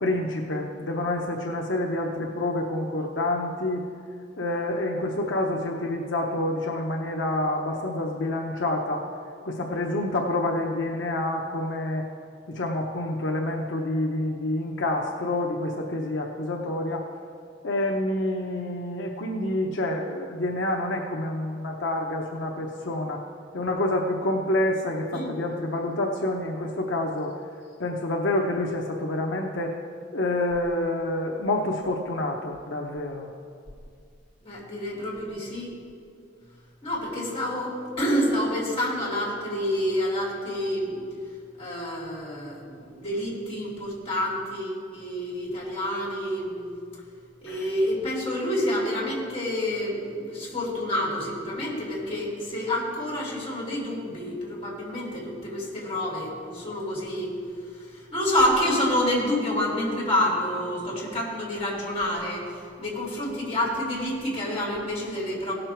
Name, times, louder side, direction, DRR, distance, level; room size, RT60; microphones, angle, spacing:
voice 1, 0.0-3.8 4.4-9.0 9.4-12.1 12.5-17.1 17.6-23.2 23.5-27.3 27.8-29.7 30.1-33.3 47.5-47.6, left 1 dB, 80° left, 0 dB, 0.8 m, -28 dB
voice 2, 34.4-35.7 36.8-41.0 41.6-46.7 47.4-57.3 57.9-65.5, left 1 dB, 30° left, -5 dB, 3.2 m, -28 dB
17.5 x 6.5 x 4.5 m, 2.3 s
head